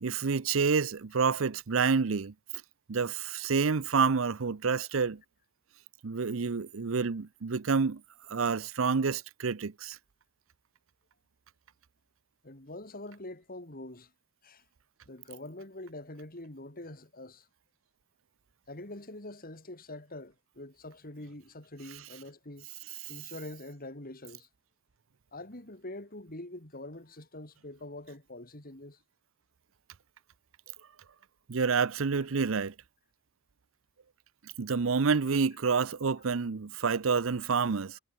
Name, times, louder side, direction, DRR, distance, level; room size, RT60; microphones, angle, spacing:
voice 1, 0.0-2.3 2.9-5.2 6.0-8.0 8.3-10.0 31.5-32.7 34.6-38.0, right 5 dB, 80° right, 0.7 m, -28 dB
voice 2, 12.4-14.1 14.4-14.6 15.1-17.5 18.7-22.7 23.1-24.5 25.3-29.0, left 1 dB, 45° left, 4.1 m, -44 dB
head